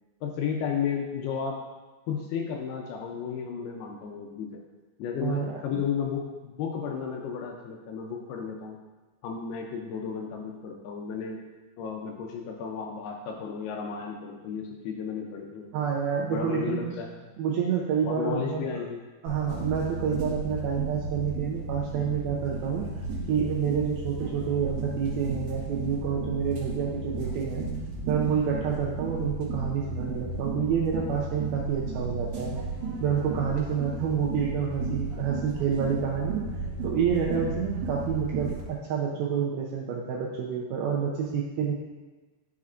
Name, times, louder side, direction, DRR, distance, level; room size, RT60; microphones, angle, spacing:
voice 1, 0.2-1.6 2.1-4.6 5.0-8.8 9.2-11.4 11.8-15.7 16.2-17.1 18.0-19.0, left 6 dB, 80° left, 1 dB, 2.4 m, -33 dB
voice 2, 5.2-5.8 15.7-16.9 17.4-18.8 19.2-22.8 23.3-27.6 28.1-32.6 33.0-36.4 36.8-41.7, right 7 dB, 80° right, -2 dB, 2.2 m, -28 dB
sound 1, 19.3-38.6, right 3 dB, 60° right, 2.0 m, -34 dB
10.5 x 5.7 x 2.5 m, 1.2 s
omnidirectional pair, 5.0 m